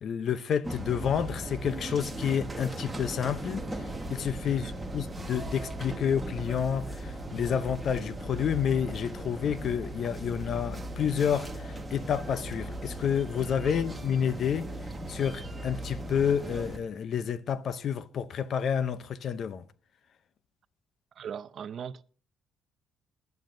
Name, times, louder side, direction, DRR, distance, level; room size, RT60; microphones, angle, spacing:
voice 1, 0.0-3.6 4.1-14.7 15.1-19.6, left 8 dB, 50° left, 0.6 m, -29 dB
sound 1, 0.6-16.8, right 1 dB, 10° right, 1.3 m, -38 dB
voice 2, 4.4-4.8 13.6-13.8 21.2-22.0, right 8 dB, 45° right, 0.5 m, -39 dB
19.5 x 10.5 x 2.6 m
cardioid pair, 145°, 0 cm